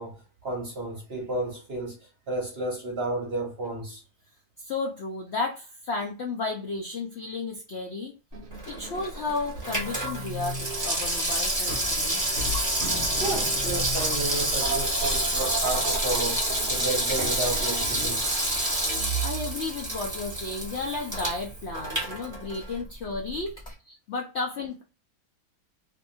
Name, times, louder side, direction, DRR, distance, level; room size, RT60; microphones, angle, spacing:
voice 1, 0.0-4.0 13.2-18.2 21.0-21.1, right 2 dB, 50° right, 0.8 m, -32 dB
voice 2, 4.6-8.2 8.7-12.3 19.2-23.7 24.1-24.8, left 3 dB, 65° left, 0.6 m, -33 dB
sound 1, 8.3-19.6, right 2 dB, 70° right, 0.5 m, -36 dB
Water tap faucet / Sink (filling or washing), 8.5-22.8 23.1-23.2, right 1 dB, 15° right, 0.8 m, -28 dB
2.7 x 2.5 x 2.6 m
omnidirectional pair, 1.8 m